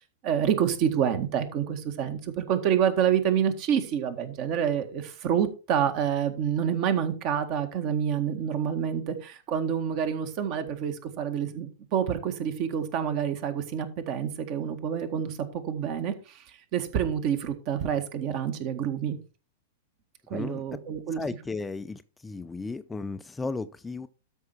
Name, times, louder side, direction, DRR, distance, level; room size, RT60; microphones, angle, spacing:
voice 1, 0.0-19.2 20.3-21.2, right 8 dB, 45° right, 1.8 m, -28 dB
voice 2, 20.3-20.6 21.2-24.1, left 3 dB, 10° left, 0.5 m, -35 dB
13.0 x 5.5 x 4.6 m
figure-of-eight pair, 100°, 0 cm